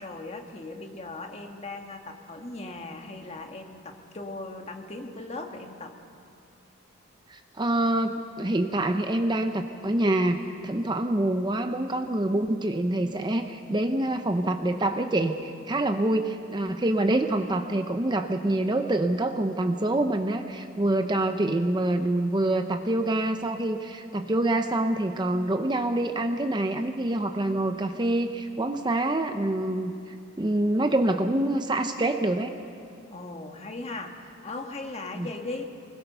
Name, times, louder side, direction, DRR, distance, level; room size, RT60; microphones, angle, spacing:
voice 1, 0.0-5.9 33.1-35.7, left 2 dB, 30° left, 3 dB, 1.6 m, -38 dB
voice 2, 7.3-29.9 30.4-32.5 35.2-35.3, right 1 dB, 20° right, 6 dB, 0.7 m, -26 dB
24.5 x 21.0 x 6.7 m, 2.5 s
head